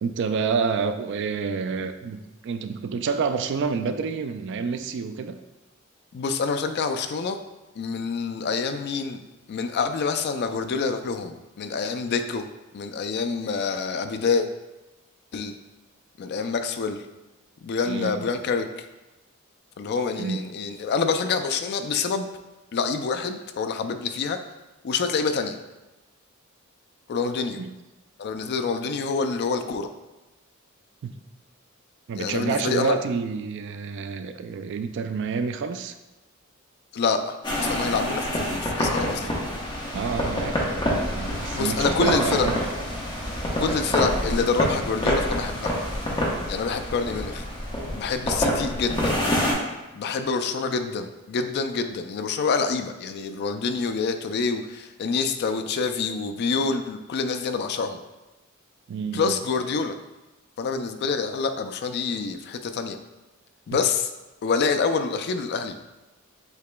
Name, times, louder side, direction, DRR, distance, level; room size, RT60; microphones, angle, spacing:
voice 1, 0.0-5.4 17.9-18.3 20.2-20.4 27.6-27.7 31.0-31.2 32.1-35.9 39.9-40.6 40.9-42.6 58.9-59.4, right 5 dB, 60° right, 9 dB, 0.3 m, -28 dB
voice 2, 6.1-7.4 7.8-9.2 9.5-12.5 12.7-14.5 15.3-15.5 16.2-17.0 17.6-18.7 19.8-22.3 22.7-24.4 24.8-25.6 27.1-27.6 28.2-29.9 32.1-33.0 36.9-39.3 41.5-42.5 43.6-45.8 46.5-47.4 47.9-49.2 49.9-58.0 59.1-60.0 60.6-63.0 63.7-64.1 64.4-65.8, left 5 dB, 50° left, 7 dB, 0.3 m, -27 dB
sound 1, 37.4-49.5, equal, 20° left, 0.9 m, -27 dB
8.0 x 2.9 x 2.2 m, 1.1 s
head